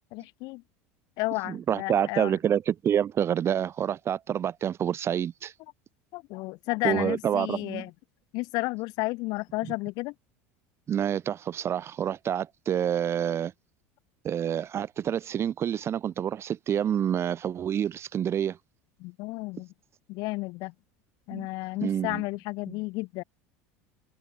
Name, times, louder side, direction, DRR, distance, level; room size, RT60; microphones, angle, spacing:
voice 1, 0.1-0.6 1.2-2.4 6.1-7.9 8.3-10.1 19.0-19.7 20.1-20.7 21.3-23.2, left 24 dB, 60° left, 1.8 m, -32 dB
voice 2, 1.5-5.5 6.8-7.8 10.9-13.5 14.2-18.6 21.3-21.5 21.8-22.2, right 9 dB, 35° right, 0.9 m, -28 dB
supercardioid pair, 105°, 8 cm